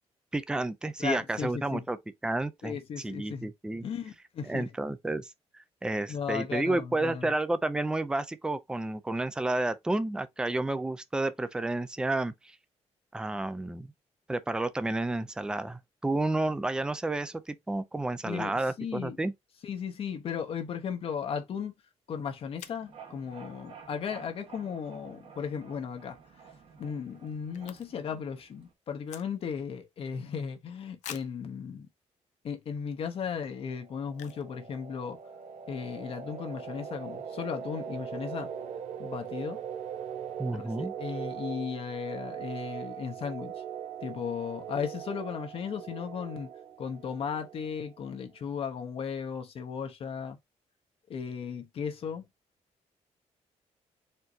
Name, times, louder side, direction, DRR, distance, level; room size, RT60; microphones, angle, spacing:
voice 1, 0.3-2.0 2.2-3.8 4.4-12.6 13.1-13.9 14.3-19.3 40.4-40.9, right 2 dB, 5° right, 0.4 m, -31 dB
voice 2, 1.0-1.8 2.6-3.5 3.8-4.7 6.1-7.3 18.2-19.2 19.6-21.7 22.1-26.2 26.8-31.9 32.4-35.2 35.7-38.5 39.0-39.6 40.5-43.6 44.0-46.5 46.8-50.4 51.1-52.3, left 7 dB, 50° left, 0.8 m, -36 dB
sound 1, 21.9-22.0 22.6-22.9 25.9-26.1 26.4-26.5 26.7-28.2 28.4-29.7 30.2-30.3 31.0-31.5 32.1-32.2 32.7-32.9 34.1-34.5 34.8-34.9 35.1-35.4, left 10 dB, 85° left, 0.6 m, -47 dB
sound 2, 22.6-28.7, right 6 dB, 50° right, 1.1 m, -52 dB
sound 3, 33.5-48.1, right 8 dB, 75° right, 0.7 m, -41 dB
4.4 x 3.6 x 2.6 m
cardioid pair, 145°, 12 cm